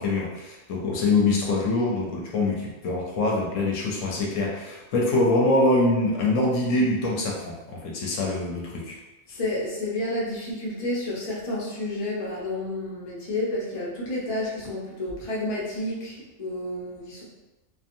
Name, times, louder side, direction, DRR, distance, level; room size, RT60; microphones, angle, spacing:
voice 1, 0.0-9.0, left 2 dB, 70° left, -2 dB, 0.9 m, -24 dB
voice 2, 9.3-17.2, left 1 dB, 40° left, -5 dB, 0.5 m, -30 dB
2.7 x 2.4 x 2.5 m, 1.1 s
omnidirectional pair, 1.4 m